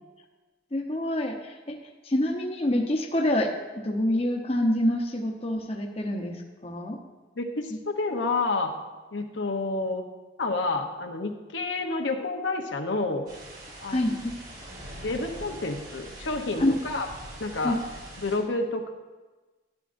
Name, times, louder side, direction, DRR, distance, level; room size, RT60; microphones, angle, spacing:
voice 1, 0.7-1.8 2.1-3.5 3.8-7.0 13.9-14.3 16.6-16.7 17.6-17.7, left 1 dB, 30° left, 2 dB, 0.8 m, -26 dB
voice 2, 7.4-8.7 9.1-10.0 10.4-13.2 13.8-14.2 15.0-17.1 17.4-17.8 18.2-18.9, left 3 dB, 85° left, 4 dB, 0.9 m, -29 dB
sound 1, 13.3-18.4, right 1 dB, 50° right, 3.2 m, -43 dB
12.0 x 10.5 x 2.6 m, 1.3 s
head